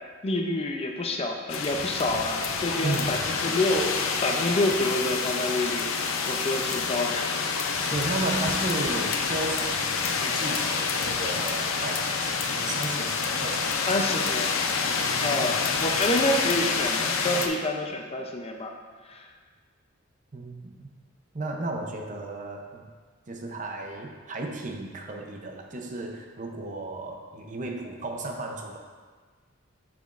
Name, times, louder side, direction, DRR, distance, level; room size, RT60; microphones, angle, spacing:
voice 1, 0.2-5.9 6.3-7.3 13.9-14.6 15.2-18.7 19.0-19.3, left 1 dB, 30° left, 3 dB, 0.5 m, -28 dB
sound 1, 1.5-17.5, left 5 dB, 80° left, 0.5 m, -28 dB
voice 2, 2.8-3.3 7.8-14.0 15.0-15.5 20.3-20.9 21.3-22.9 23.3-28.8, right 2 dB, 40° right, 2 dB, 0.6 m, -34 dB
7.0 x 6.0 x 2.5 m, 1.5 s
head